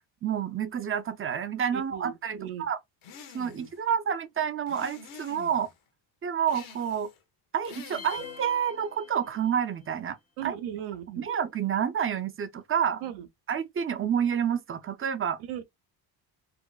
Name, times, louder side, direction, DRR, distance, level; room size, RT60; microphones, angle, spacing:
voice 1, 0.2-2.8 3.3-5.7 6.2-7.1 7.5-10.2 10.4-10.6 11.2-13.0 13.5-15.4, right 8 dB, 30° right, 0.4 m, -29 dB
voice 2, 1.7-2.7 3.5-3.7 10.4-11.3 13.0-13.3 15.4-15.6, right 11 dB, 80° right, 1.0 m, -37 dB
sound 1, 3.0-3.8 4.7-5.7 6.5-7.2 7.6-8.4, left 6 dB, 80° left, 1.4 m, -47 dB
sound 2, 7.9-9.7, left 5 dB, 30° left, 0.6 m, -45 dB
5.0 x 2.0 x 2.3 m
cardioid pair, 110°, 48 cm